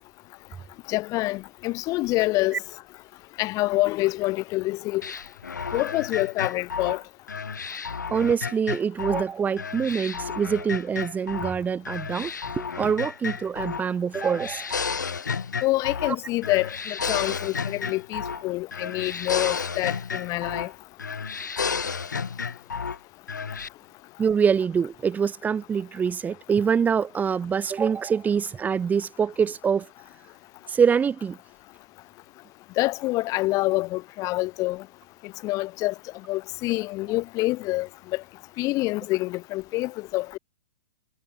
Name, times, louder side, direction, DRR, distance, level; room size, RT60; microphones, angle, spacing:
voice 1, 0.9-2.6 3.4-5.0 5.7-7.0 15.6-20.7 32.8-34.8 35.4-35.9 36.3-38.2 38.6-40.4, left 19 dB, 35° left, 6.9 m, -26 dB
sound 1, 5.0-9.3 9.6-11.6 11.9-13.9 14.1-16.2 16.4-18.5 18.7-20.7 21.0-23.0 23.3-23.7, left 5 dB, 90° left, 3.1 m, -32 dB
voice 2, 8.1-12.3 12.6-14.7 24.2-29.9 30.7-31.4, right 6 dB, 15° right, 4.7 m, -25 dB
hypercardioid pair, 120°, 10 cm